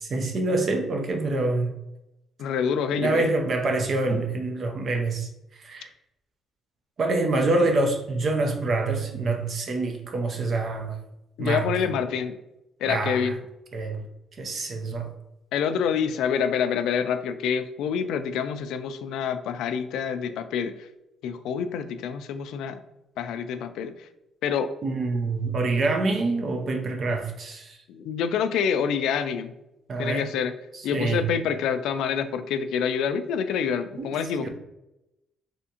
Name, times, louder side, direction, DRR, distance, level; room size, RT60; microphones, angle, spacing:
voice 1, 0.0-1.7 2.9-5.3 5.6-5.9 7.0-11.0 11.4-11.7 12.9-13.3 13.7-14.0 14.4-15.1 24.8-27.8 29.9-30.3 30.9-31.3 34.0-34.5, right 2 dB, 45° right, 0.6 m, -26 dB
voice 2, 2.4-3.3 11.4-12.3 12.8-13.4 15.5-20.7 21.2-22.8 23.2-23.9 24.4-24.7 27.9-29.5 30.0-30.5 30.8-34.5, left 7 dB, 90° left, 0.3 m, -27 dB
3.4 x 2.7 x 2.8 m
cardioid pair, 140°, 0 cm